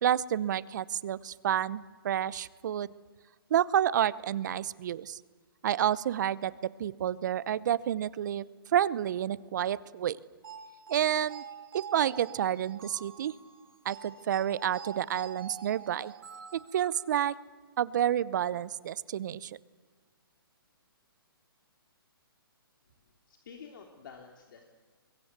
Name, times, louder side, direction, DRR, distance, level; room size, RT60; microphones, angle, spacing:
voice 1, 0.0-2.9 3.5-5.2 5.6-8.4 8.7-10.2 10.9-11.4 11.7-13.3 13.8-16.1 16.7-17.3 17.8-19.5, right 10 dB, 50° right, 20 dB, 0.8 m, -29 dB
sound 1, 10.4-17.3, right 7 dB, 65° right, 5.7 m, -47 dB
voice 2, 23.3-24.7, left 6 dB, 55° left, 3 dB, 3.0 m, -49 dB
24.5 x 22.5 x 8.2 m, 1.5 s
hypercardioid pair, 150°, 13 cm